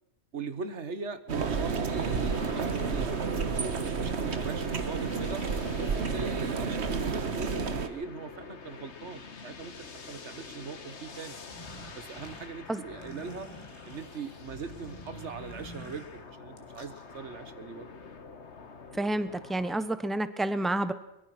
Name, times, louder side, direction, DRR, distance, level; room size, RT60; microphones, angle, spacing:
voice 1, 0.3-3.1 3.5-5.4 5.8-11.4 12.0-13.5 13.9-17.9 19.8-19.9, right 4 dB, 90° right, 11 dB, 1.7 m, -40 dB
sound 1, 1.3-7.9, right 5 dB, 75° right, 1.6 m, -30 dB
sound 2, 1.9-19.7, left 4 dB, 80° left, 1.8 m, -47 dB
sound 3, 11.5-17.0, equal, 25° left, 2.8 m, -48 dB
voice 2, 19.0-20.9, right 1 dB, ahead, 12 dB, 1.0 m, -29 dB
23.5 x 22.0 x 6.1 m, 0.87 s
omnidirectional pair, 1.1 m